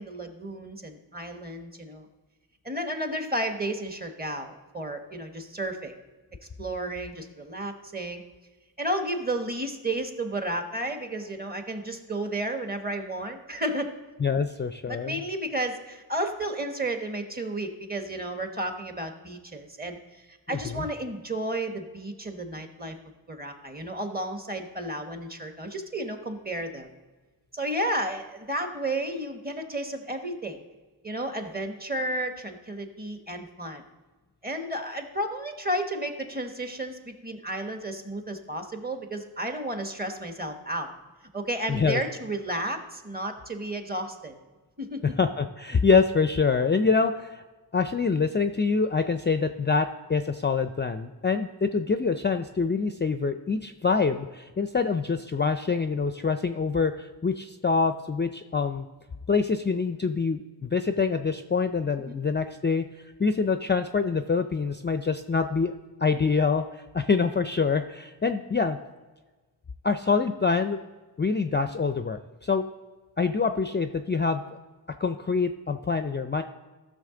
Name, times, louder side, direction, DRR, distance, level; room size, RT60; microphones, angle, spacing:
voice 1, 0.0-2.0 2.6-5.9 6.6-8.2 8.8-13.9 14.9-22.9 23.3-26.9 27.5-30.6 31.0-33.8 34.4-40.9 41.3-44.4 44.8-45.0 62.0-62.2, right 1 dB, 20° right, 6 dB, 1.2 m, -32 dB
voice 2, 14.2-15.2 20.5-20.9 41.7-42.0 45.2-47.4 47.7-58.9 59.3-62.8 63.2-65.7 66.0-68.8 69.8-70.8 71.2-72.6 73.2-74.4 75.0-76.4, left 5 dB, 25° left, 8 dB, 0.4 m, -25 dB
14.0 x 6.4 x 3.8 m, 1.3 s
wide cardioid pair, 60°, 42 cm